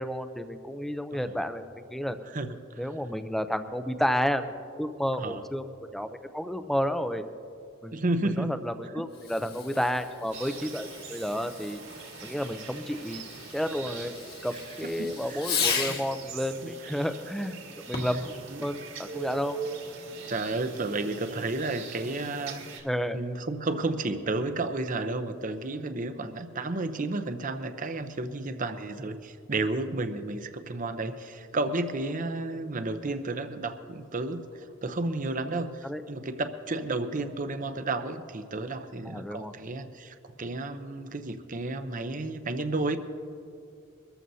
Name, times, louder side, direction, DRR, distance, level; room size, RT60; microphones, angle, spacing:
voice 1, 0.0-1.7 1.9-2.2 2.8-4.4 4.8-5.6 5.9-7.2 7.8-7.9 8.4-11.8 12.2-13.2 13.5-14.1 14.4-17.5 17.9-18.3 18.6-19.6 22.8-23.2 35.8-36.0 39.1-39.5, equal, ahead, 9 dB, 0.5 m, -31 dB
voice 2, 7.9-8.5 15.0-15.7 16.6-16.7 17.9-18.0 18.5-18.6 20.1-22.8 23.1-43.0, right 2 dB, 40° right, 9 dB, 0.7 m, -32 dB
Fireworks, 9.1-16.2 17.8-18.3, left 6 dB, 50° left, 1.8 m, -36 dB
sound 1, 10.3-22.8, right 5 dB, 70° right, 2.2 m, -42 dB
23.5 x 14.0 x 2.8 m, 2.5 s
head